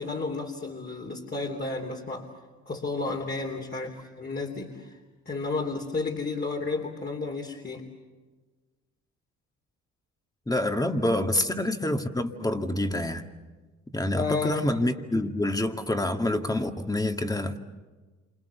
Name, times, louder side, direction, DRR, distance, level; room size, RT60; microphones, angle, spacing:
voice 1, 0.0-2.3 2.7-5.0 5.2-7.8 11.1-11.2 14.1-14.6, left 3 dB, 30° left, 3.3 m, -32 dB
voice 2, 10.5-13.2 13.9-17.6, left 1 dB, 10° left, 2.1 m, -27 dB
28.5 x 27.5 x 7.0 m
cardioid pair, 90°, 30 cm